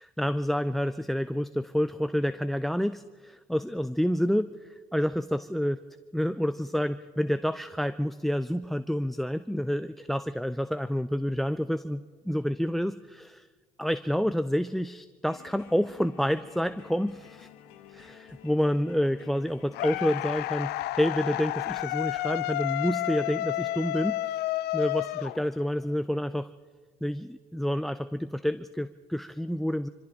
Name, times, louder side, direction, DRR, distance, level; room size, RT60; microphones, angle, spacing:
voice 1, 0.2-4.5 4.9-5.8 6.1-13.5 13.8-17.5 18.0-18.2 18.4-20.7 21.0-24.2 24.7-26.5 27.0-29.9, equal, ahead, 14 dB, 0.4 m, -28 dB
sound 1, 15.3-20.4, left 11 dB, 85° left, 1.3 m, -51 dB
sound 2, 19.7-25.8, left 16 dB, 65° left, 0.5 m, -31 dB
25.0 x 15.5 x 3.7 m, 1.4 s
supercardioid pair, 80°, 18 cm